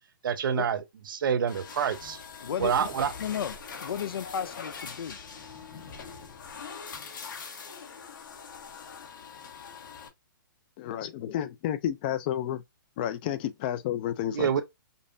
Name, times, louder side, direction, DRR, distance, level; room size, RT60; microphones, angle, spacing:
voice 1, 0.2-2.2 2.6-3.1 14.3-14.6, right 8 dB, 65° right, 0.7 m, -27 dB
sound 1, 1.5-10.1, left 6 dB, 65° left, 1.2 m, -42 dB
voice 2, 2.4-2.9 3.2-5.2, left 8 dB, 85° left, 0.5 m, -34 dB
voice 3, 10.8-12.6 13.0-14.6, left 11 dB, 25° left, 0.3 m, -31 dB
5.3 x 2.0 x 2.6 m
hypercardioid pair, 160°, 12 cm